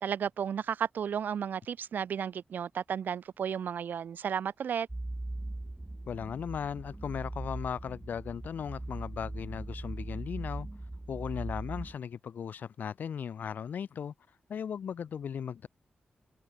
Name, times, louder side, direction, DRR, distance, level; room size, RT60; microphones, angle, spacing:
voice 1, 0.0-4.9, right 8 dB, 65° right, 0.3 m, -33 dB
sound 1, 4.9-12.0, right 2 dB, 10° right, 0.8 m, -40 dB
voice 2, 6.1-10.7 11.1-14.1 14.5-15.7, left 7 dB, 60° left, 0.4 m, -37 dB
wide cardioid pair, 170°, 3 cm